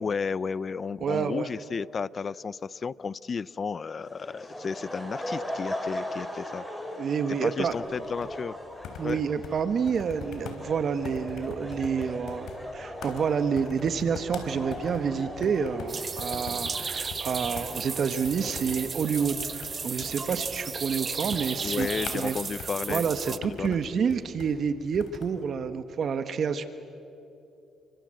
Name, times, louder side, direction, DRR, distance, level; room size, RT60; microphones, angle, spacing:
voice 1, 0.0-6.6 7.4-8.6 9.0-9.2 21.6-23.8, left 5 dB, 40° left, 21 dB, 0.5 m, -33 dB
voice 2, 1.0-1.5 7.0-7.7 9.0-21.9 22.1-22.4 22.9-26.7, right 6 dB, 55° right, 10 dB, 1.4 m, -28 dB
sound 1, 4.0-23.3, left 1 dB, 5° left, 5.1 m, -40 dB
sound 2, 7.6-25.4, left 5 dB, 80° left, 3.7 m, -44 dB
sound 3, 15.9-23.4, right 5 dB, 40° right, 0.8 m, -35 dB
29.5 x 24.5 x 7.7 m, 2.9 s
cardioid pair, 90°, 0 cm